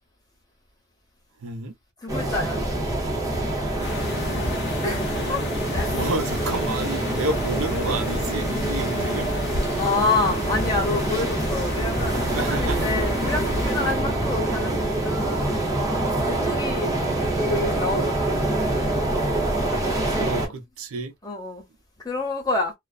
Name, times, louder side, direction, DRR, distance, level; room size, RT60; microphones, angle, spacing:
voice 1, 1.4-1.7 5.9-9.3 12.3-12.8 14.0-14.3 20.2-21.1, right 3 dB, 75° right, 0.6 m, -29 dB
voice 2, 2.0-2.6 4.8-5.4 5.7-6.0 9.8-15.6 16.3-16.9 17.4-18.5 19.7-20.4 21.2-21.6 22.0-22.7, left 3 dB, 20° left, 1.0 m, -28 dB
sound 1, 2.1-20.5, right 1 dB, 15° right, 0.7 m, -25 dB
sound 2, 3.8-13.9, left 2 dB, 50° left, 0.7 m, -33 dB
2.4 x 2.1 x 2.3 m
head